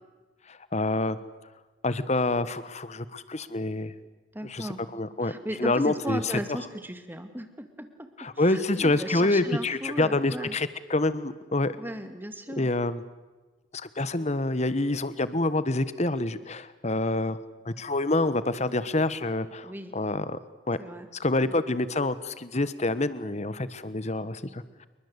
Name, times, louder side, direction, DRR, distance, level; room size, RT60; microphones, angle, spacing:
voice 1, 0.5-1.2 1.8-3.9 4.4-5.3 5.6-6.3 8.2-11.8 12.6-13.0 13.7-17.4 17.6-20.4 20.7-20.8 21.2-24.9, left 2 dB, 35° left, 14 dB, 1.3 m, -27 dB
voice 2, 4.3-4.8 5.2-8.1 8.4-10.5 11.8-12.7 19.6-19.9 20.8-21.1 21.4-21.6, equal, 10° right, 8 dB, 2.1 m, -36 dB
27.5 x 23.0 x 8.2 m, 1.2 s
head